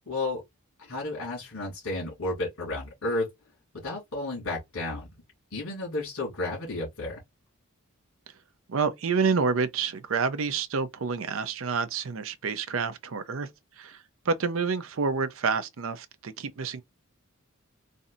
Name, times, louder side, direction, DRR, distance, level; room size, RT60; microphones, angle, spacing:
voice 1, 0.1-0.4 0.8-3.3 3.8-5.1 5.5-7.2, left 2 dB, 70° left, 2.4 m, -32 dB
voice 2, 8.7-13.5 13.8-14.0 14.3-16.8, right 5 dB, 65° right, 0.5 m, -28 dB
4.2 x 2.7 x 2.5 m
head